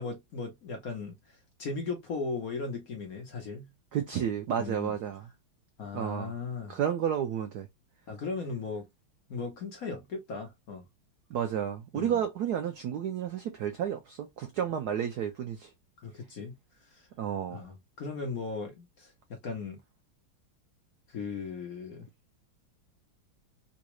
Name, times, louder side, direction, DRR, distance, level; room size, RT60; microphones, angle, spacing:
voice 1, 0.0-3.7 4.6-4.9 5.8-6.8 8.1-8.9 9.3-10.8 11.9-12.2 16.0-16.5 16.9-17.1 17.5-19.8 21.1-22.1, left 4 dB, 55° left, 1.0 m, -37 dB
voice 2, 3.9-5.3 5.9-6.3 6.7-7.7 11.3-15.7 17.2-17.6, right 9 dB, 75° right, 0.9 m, -31 dB
3.9 x 2.3 x 3.0 m
omnidirectional pair, 2.3 m